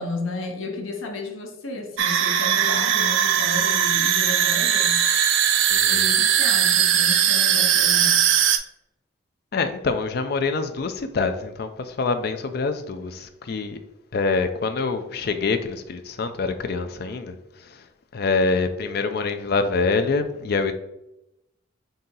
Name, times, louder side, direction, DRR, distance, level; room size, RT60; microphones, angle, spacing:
voice 1, 0.0-5.0 5.9-8.3, left 2 dB, 75° left, 3 dB, 0.8 m, -33 dB
sound 1, 2.0-8.6, right 9 dB, 65° right, 0.4 m, -20 dB
voice 2, 5.7-6.1 9.5-13.8 14.1-17.3 18.1-20.7, left 4 dB, 50° left, 8 dB, 0.4 m, -25 dB
4.1 x 2.8 x 3.8 m, 0.86 s
head